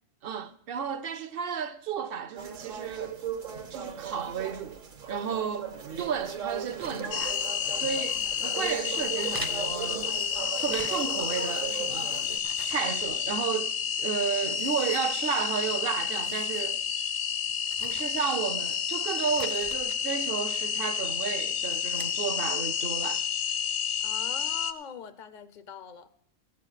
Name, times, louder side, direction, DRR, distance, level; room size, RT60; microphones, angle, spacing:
voice 1, 0.2-3.2 3.7-7.4 7.7-10.2 10.6-12.3 12.6-16.8 17.8-23.2, right 7 dB, 55° right, 0.7 m, -33 dB
sound 1, 2.4-12.4, right 7 dB, 80° right, 1.6 m, -38 dB
sound 2, 5.9-7.8 8.1-8.7 9.2-11.3 11.7-13.6 13.9-14.0 14.4-15.6 15.9-16.7 17.1-17.2 17.6-18.8 19.1-20.0 20.7-21.2 21.6-22.1, right 3 dB, 25° right, 0.5 m, -46 dB
sound 3, 7.1-24.7, left 7 dB, 80° left, 1.1 m, -30 dB
voice 2, 24.0-26.1, left 8 dB, 55° left, 0.5 m, -42 dB
15.5 x 6.8 x 6.4 m
omnidirectional pair, 1.3 m